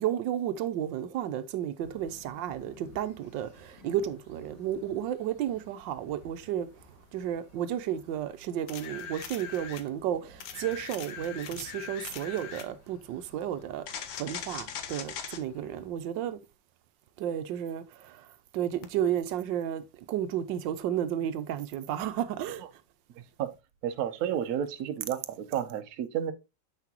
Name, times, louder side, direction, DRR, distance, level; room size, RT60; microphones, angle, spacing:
voice 1, 0.0-6.7 7.1-16.4 17.2-18.2 18.5-22.6, right 10 dB, 85° right, 1.3 m, -32 dB
sound 1, 1.8-15.9, left 2 dB, 60° left, 2.5 m, -56 dB
sound 2, 8.7-9.9 10.4-12.7 13.9-15.4 18.8-18.9, left 8 dB, 90° left, 1.6 m, -40 dB
voice 2, 23.8-26.3, right 9 dB, 65° right, 1.1 m, -31 dB
8.1 x 5.9 x 2.8 m
omnidirectional pair, 2.0 m